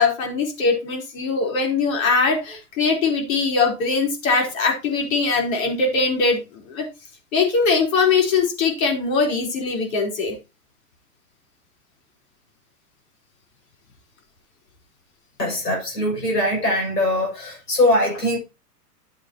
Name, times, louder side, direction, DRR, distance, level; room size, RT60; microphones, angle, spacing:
voice 1, 0.0-6.4 6.7-6.9 7.3-10.3, left 4 dB, 55° left, 4.0 m, -21 dB
voice 2, 15.4-18.4, left 1 dB, 85° left, 6.6 m, -21 dB
11.0 x 7.6 x 2.9 m
figure-of-eight pair, 110°, 47 cm